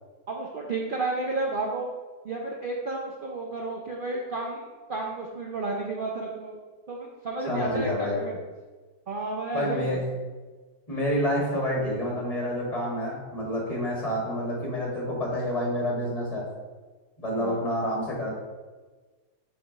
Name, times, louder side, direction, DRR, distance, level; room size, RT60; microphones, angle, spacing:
voice 1, 0.3-1.9 2.2-6.6 6.9-8.4 9.1-10.1 17.4-17.6, right 3 dB, 75° right, -1 dB, 0.4 m, -32 dB
voice 2, 7.5-8.2 9.5-10.0 10.9-16.4 17.2-18.3, equal, 20° left, -4 dB, 1.8 m, -28 dB
6.0 x 3.5 x 5.1 m, 1.3 s
omnidirectional pair, 1.8 m